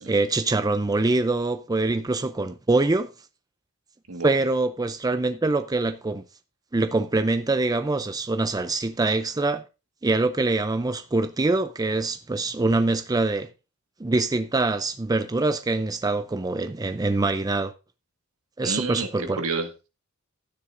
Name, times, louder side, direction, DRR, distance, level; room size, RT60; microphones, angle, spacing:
voice 1, 0.0-3.1 4.2-6.2 6.7-9.6 10.0-13.5 14.0-17.7 18.6-19.4, right 2 dB, 20° right, 0.5 m, -24 dB
voice 2, 18.6-19.1 19.4-19.9, right 4 dB, 75° right, 1.7 m, -30 dB
12.5 x 10.0 x 2.6 m
head